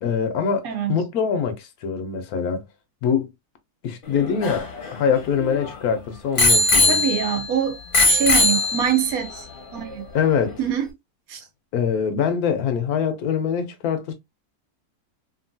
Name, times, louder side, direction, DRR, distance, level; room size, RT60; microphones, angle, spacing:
voice 1, 0.0-2.6 3.0-3.3 3.8-7.0 10.1-10.6 11.7-14.1, left 7 dB, 75° left, 1.1 m, -24 dB
voice 2, 0.6-1.0 6.9-7.8 8.0-9.4 9.7-10.1 10.6-10.9 11.3-11.4, right 9 dB, 70° right, 1.0 m, -24 dB
Bicycle bell, 4.1-5.7 6.4-7.5 7.9-9.2 9.9-10.0, left 2 dB, 45° left, 0.8 m, -20 dB
2.9 x 2.6 x 2.6 m
omnidirectional pair, 1.6 m